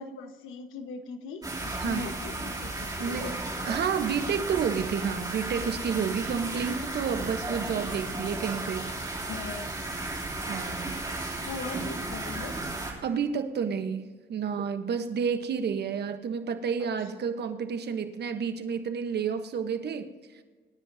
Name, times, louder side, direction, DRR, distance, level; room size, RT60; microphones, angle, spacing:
voice 1, 0.0-3.3 9.3-9.7 11.5-12.6 17.1-17.2, left 5 dB, 90° left, 7 dB, 1.2 m, -40 dB
sound 1, 1.4-12.9, right 2 dB, 20° right, 3.0 m, -34 dB
voice 2, 3.0-3.3 3.7-8.9 10.5-10.9 13.0-20.1, right 6 dB, 55° right, 9 dB, 1.1 m, -30 dB
26.0 x 10.0 x 2.7 m, 1.4 s
cardioid pair, 90°, 20 cm